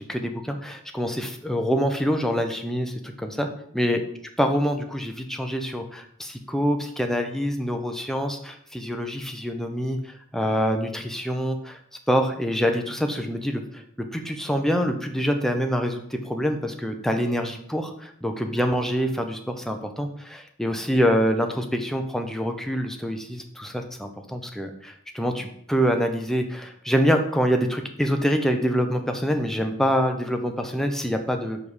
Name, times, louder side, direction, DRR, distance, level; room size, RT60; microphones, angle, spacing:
voice 1, 0.0-4.0 4.4-10.0 10.3-11.8 12.1-13.6 14.1-31.6, equal, ahead, 4 dB, 0.7 m, -25 dB
5.4 x 5.1 x 4.9 m, 0.67 s
head